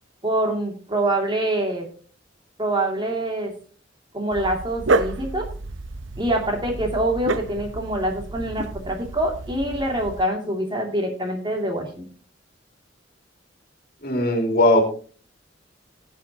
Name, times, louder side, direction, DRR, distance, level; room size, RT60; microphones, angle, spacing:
voice 1, 0.2-1.9 2.6-3.5 4.1-5.5 6.2-12.0, right 1 dB, 25° right, 2 dB, 2.6 m, -25 dB
Dog, 4.3-10.2, right 2 dB, 85° right, 0.8 m, -29 dB
voice 2, 14.0-14.8, left 1 dB, 55° left, 3 dB, 2.5 m, -18 dB
17.5 x 8.3 x 2.9 m, 0.41 s
head